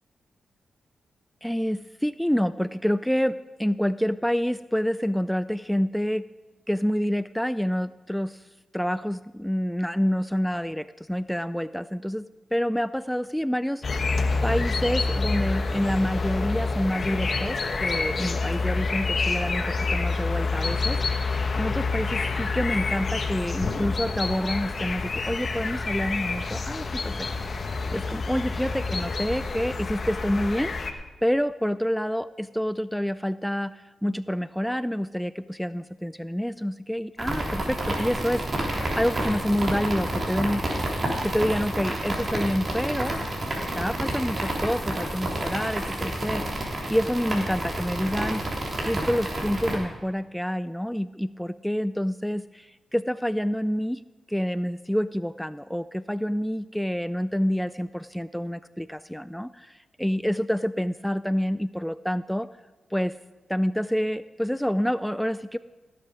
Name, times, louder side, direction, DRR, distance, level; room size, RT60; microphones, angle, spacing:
voice 1, 1.4-6.2 6.7-8.4 8.7-27.3 27.9-40.6 41.2-43.2 43.6-48.4 48.8-54.0 54.3-62.5 62.9-63.2 63.5-65.6, equal, 5° left, 15 dB, 0.3 m, -28 dB
sound 1, 13.8-30.9, left 3 dB, 50° left, 1.1 m, -27 dB
sound 2, 37.2-49.8, right 1 dB, 45° right, 3.5 m, -29 dB
17.0 x 7.6 x 5.0 m, 1.3 s
supercardioid pair, 50°, 0 cm